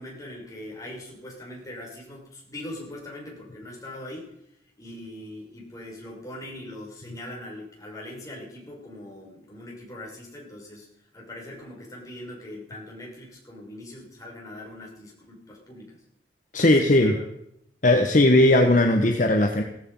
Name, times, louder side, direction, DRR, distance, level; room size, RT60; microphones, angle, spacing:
voice 1, 0.0-4.3 4.8-10.9 11.1-16.0 16.6-17.3, left 1 dB, 20° left, -2 dB, 5.8 m, -41 dB
voice 2, 16.5-17.1 17.8-19.6, left 1 dB, 45° left, 4 dB, 1.3 m, -18 dB
16.5 x 14.5 x 5.6 m, 0.75 s
head